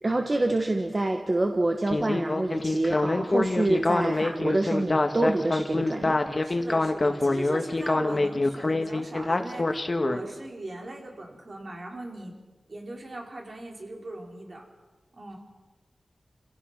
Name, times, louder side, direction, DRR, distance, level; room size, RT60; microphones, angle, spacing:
voice 1, 0.0-6.2, right 2 dB, 35° right, 4 dB, 1.6 m, -26 dB
Speech synthesizer, 1.9-10.2, left 2 dB, 40° left, 1.6 m, -25 dB
voice 2, 6.4-12.4 12.7-14.7 15.1-15.4, right 2 dB, 55° right, 0 dB, 4.9 m, -39 dB
28.5 x 17.0 x 6.0 m, 1.2 s
wide cardioid pair, 80°, 0 cm